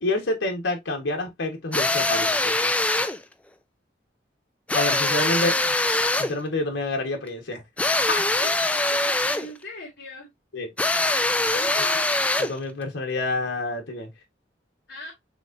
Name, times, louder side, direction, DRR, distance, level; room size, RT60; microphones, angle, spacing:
voice 1, 0.0-2.6 4.7-5.7 6.2-7.6 8.1-8.2 10.5-10.7 11.8-11.9 12.4-14.1, left 2 dB, 90° left, 1.1 m, -28 dB
sound 1, 1.7-3.2 4.7-6.4 7.8-9.5 10.8-12.6, left 2 dB, 5° left, 0.3 m, -23 dB
voice 2, 8.9-10.3 11.5-12.1 14.9-15.1, left 2 dB, 55° left, 2.4 m, -40 dB
6.1 x 3.0 x 2.5 m
head